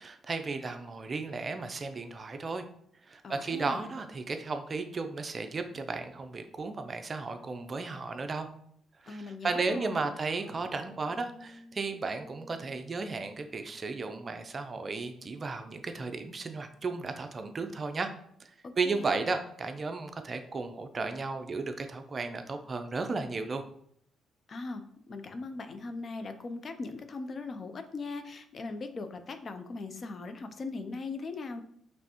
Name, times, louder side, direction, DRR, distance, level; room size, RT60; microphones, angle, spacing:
voice 1, 0.0-2.6 3.0-8.5 9.0-18.1 18.4-23.6, right 4 dB, 35° right, 7 dB, 0.5 m, -34 dB
voice 2, 3.2-3.9 9.1-10.1 18.6-19.2 24.5-31.6, left 3 dB, 45° left, 8 dB, 0.5 m, -40 dB
sound 1, 10.0-14.3, left 1 dB, 10° right, 1.6 m, -55 dB
5.2 x 3.3 x 2.9 m, 0.67 s
cardioid pair, 90°, 0 cm